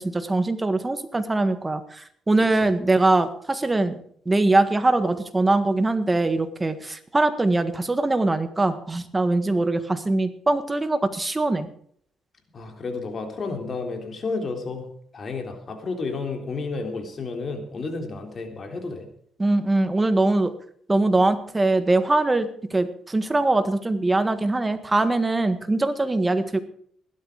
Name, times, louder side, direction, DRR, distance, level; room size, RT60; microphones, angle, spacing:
voice 1, 0.0-4.0 4.2-11.7 19.4-20.5 20.9-26.6, right 2 dB, 20° right, 10 dB, 1.6 m, -22 dB
voice 2, 12.5-14.8 15.1-19.1, left 4 dB, 45° left, 4 dB, 3.5 m, -31 dB
16.5 x 12.0 x 5.0 m, 0.62 s
cardioid pair, 90°, 0 cm